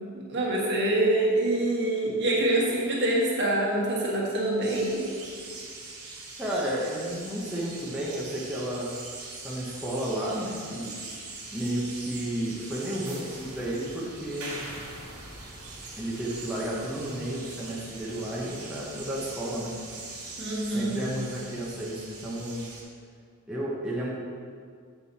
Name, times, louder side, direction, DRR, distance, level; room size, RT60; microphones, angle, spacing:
voice 1, 0.1-5.0 20.4-21.1, right 1 dB, 55° right, -4 dB, 1.5 m, -25 dB
sound 1, 4.6-22.8, right 3 dB, 90° right, 1.9 m, -42 dB
voice 2, 6.4-9.0 9.4-10.9 11.5-14.6 16.0-19.7 20.6-22.7 23.5-24.1, right 1 dB, 5° right, -7 dB, 1.0 m, -32 dB
7.6 x 5.3 x 4.2 m, 2.1 s
head